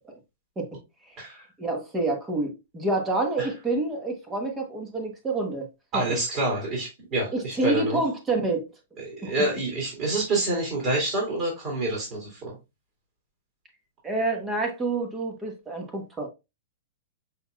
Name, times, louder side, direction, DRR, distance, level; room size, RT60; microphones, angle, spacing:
voice 1, 1.6-5.7 5.9-6.0 7.3-8.6 9.2-9.3 14.0-16.3, right 2 dB, 15° right, 1.2 m, -28 dB
voice 2, 5.9-8.0 9.0-12.5, right 2 dB, 35° right, 2.7 m, -27 dB
5.8 x 4.0 x 2.3 m
hypercardioid pair, 135°, 0 cm